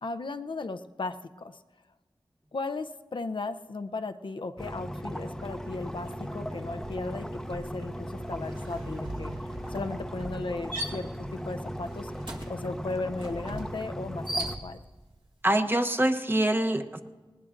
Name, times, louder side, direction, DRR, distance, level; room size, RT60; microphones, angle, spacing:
voice 1, 0.0-1.6 2.5-9.3 9.7-12.1 12.5-14.8, left 3 dB, 60° left, 8 dB, 0.5 m, -36 dB
sound 1, 4.6-14.6, equal, 5° left, 0.7 m, -37 dB
sound 2, 6.0-6.3 6.6-15.1, right 1 dB, 60° right, 1.7 m, -40 dB
voice 2, 15.4-17.0, right 1 dB, 20° right, 6 dB, 0.9 m, -25 dB
19.5 x 19.0 x 2.5 m, 1.3 s
wide cardioid pair, 45°, 9 cm